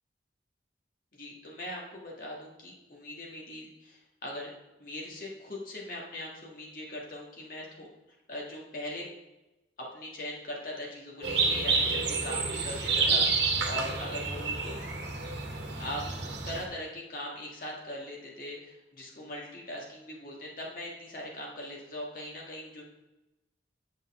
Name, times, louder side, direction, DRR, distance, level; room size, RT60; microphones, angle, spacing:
voice 1, 1.1-4.5 4.8-7.9 8.3-9.1 9.8-14.8 15.8-16.0 16.4-22.8, left 1 dB, 50° left, -2 dB, 1.7 m, -40 dB
sound 1, 11.2-16.6, right 4 dB, 70° right, 1.1 m, -29 dB
8.2 x 5.4 x 3.6 m, 1.0 s
head